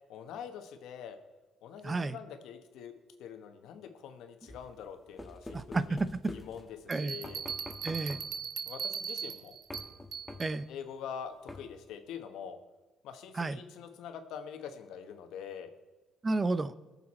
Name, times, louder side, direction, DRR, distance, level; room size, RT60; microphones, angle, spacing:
voice 1, 0.1-1.2 1.6-2.9 3.2-6.0 6.3-7.4 8.6-9.5 10.7-12.6 13.0-15.7, left 7 dB, 85° left, 7 dB, 1.3 m, -44 dB
voice 2, 1.8-2.2 5.5-6.3 6.9-7.2 7.8-8.2 10.4-10.7 13.3-13.6 16.2-16.7, right 3 dB, 30° right, 14 dB, 0.7 m, -31 dB
sound 1, 4.5-6.9 7.2-8.4 9.7-10.7 11.5-11.9, left 2 dB, 15° left, 1.5 m, -47 dB
Bell, 6.9-10.6, right 7 dB, 70° right, 0.9 m, -39 dB
20.0 x 7.0 x 4.3 m, 1.2 s
cardioid pair, 90°, 0 cm